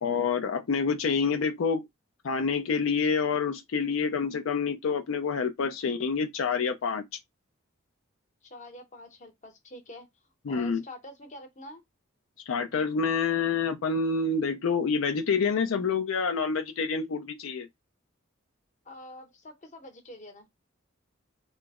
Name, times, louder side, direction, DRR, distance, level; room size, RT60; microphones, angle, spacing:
voice 1, 0.0-1.9 2.2-7.0 10.5-10.8 12.5-17.7, left 5 dB, 85° left, 0.5 m, -27 dB
voice 2, 8.4-10.1 10.5-11.8 18.9-20.5, left 1 dB, 35° left, 0.8 m, -46 dB
3.0 x 2.0 x 3.5 m
head